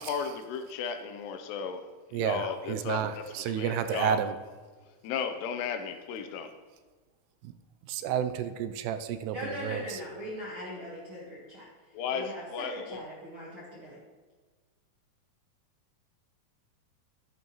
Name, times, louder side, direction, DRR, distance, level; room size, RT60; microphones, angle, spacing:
voice 1, 0.0-1.9 2.1-3.2 3.5-4.2 5.0-6.5 11.9-13.0, left 6 dB, 80° left, 7 dB, 2.7 m, -35 dB
voice 2, 2.1-4.4 7.4-7.5 7.9-10.0, right 9 dB, 85° right, 10 dB, 2.7 m, -31 dB
voice 3, 9.3-11.6 12.1-14.0, equal, 60° right, -6 dB, 1.3 m, -40 dB
11.0 x 9.3 x 3.0 m, 1.4 s
omnidirectional pair, 4.7 m